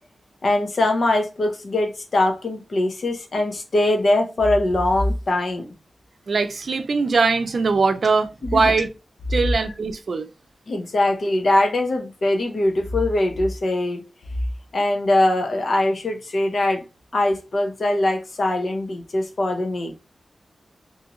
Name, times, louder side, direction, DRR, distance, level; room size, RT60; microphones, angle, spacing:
voice 1, 0.4-5.7 8.4-8.9 10.7-14.0 14.7-16.8 17.1-20.0, left 1 dB, 55° left, 0.8 m, -22 dB
voice 2, 6.3-8.9 9.3-10.3, right 4 dB, 60° right, 0.5 m, -21 dB
3.6 x 2.8 x 2.9 m
wide cardioid pair, 125°, 0 cm